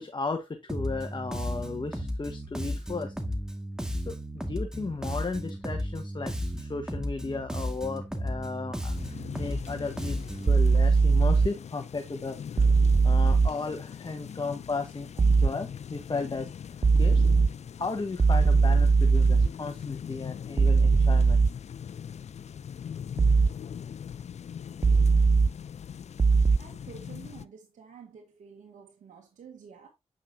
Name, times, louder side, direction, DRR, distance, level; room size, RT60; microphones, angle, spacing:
voice 1, 0.0-3.1 4.1-9.0 9.3-12.7 13.0-16.5 17.0-17.2 17.8-21.4, left 3 dB, 35° left, 1.3 m, -35 dB
Bass guitar, 0.7-10.6, equal, 5° right, 2.0 m, -34 dB
sound 1, 8.9-27.5, left 8 dB, 60° left, 0.5 m, -41 dB
sound 2, 10.5-11.5 12.6-13.5 15.2-15.5 16.8-17.5 18.2-19.5 20.6-21.5 23.2-23.5 24.8-25.5 26.2-26.6, right 4 dB, 30° right, 0.4 m, -20 dB
voice 2, 26.6-29.9, right 6 dB, 75° right, 1.5 m, -49 dB
8.7 x 5.7 x 2.8 m
supercardioid pair, 45°, 13 cm